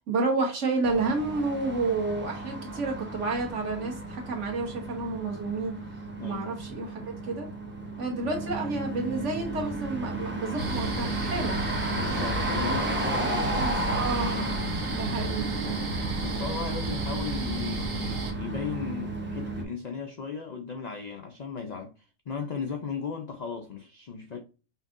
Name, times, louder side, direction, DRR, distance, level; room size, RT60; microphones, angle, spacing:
voice 1, 0.0-5.7 6.2-7.5 8.0-11.6 13.5-14.5 14.9-15.8 16.3-16.6, right 3 dB, 65° right, 1.4 m, -30 dB
sound 1, 0.8-19.6, right 2 dB, 15° right, 0.4 m, -33 dB
sound 2, 10.6-18.3, right 3 dB, 45° right, 0.9 m, -33 dB
voice 2, 11.9-14.6 16.2-21.9 22.3-24.4, left 5 dB, 70° left, 0.4 m, -36 dB
5.5 x 2.6 x 2.5 m
omnidirectional pair, 1.4 m